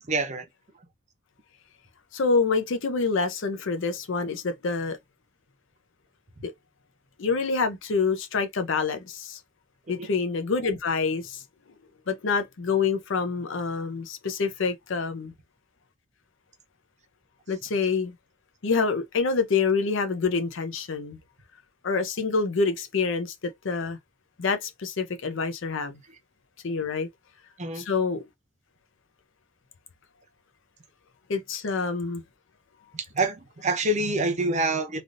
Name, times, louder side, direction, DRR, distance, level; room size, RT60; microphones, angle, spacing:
voice 1, 0.0-0.5 10.0-10.1 26.1-26.2 27.6-27.9 32.9-35.0, right 2 dB, 35° right, 0.7 m, -27 dB
voice 2, 2.1-5.0 6.4-6.5 7.2-9.4 9.9-11.4 12.1-15.3 17.5-18.1 18.6-21.2 21.8-24.0 24.4-26.0 26.6-27.1 27.8-28.2 31.3-32.2, left 4 dB, 60° left, 0.6 m, -27 dB
3.3 x 2.5 x 2.5 m
head